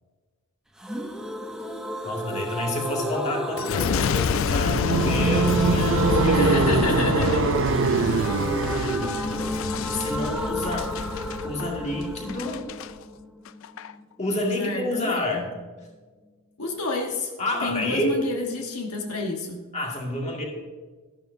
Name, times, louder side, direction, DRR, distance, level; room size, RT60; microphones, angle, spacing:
sound 1, 0.8-14.4 14.7-14.8 15.0-15.1, left 1 dB, 5° right, 0.7 m, -31 dB
voice 1, 2.0-6.9 9.9-10.9 11.4-12.7 14.2-15.5 17.4-18.1 19.7-20.4, left 1 dB, 30° left, -1 dB, 2.0 m, -29 dB
Boom, 3.6-12.9 13.5-13.9, left 6 dB, 60° left, 0.3 m, -28 dB
sound 2, 4.6-9.3, right 5 dB, 55° right, 0.4 m, -23 dB
voice 2, 6.3-7.6 14.3-15.4 16.6-17.3 17.6-19.6, left 2 dB, 85° left, 2 dB, 1.3 m, -29 dB
12.5 x 11.5 x 2.7 m, 1.4 s
head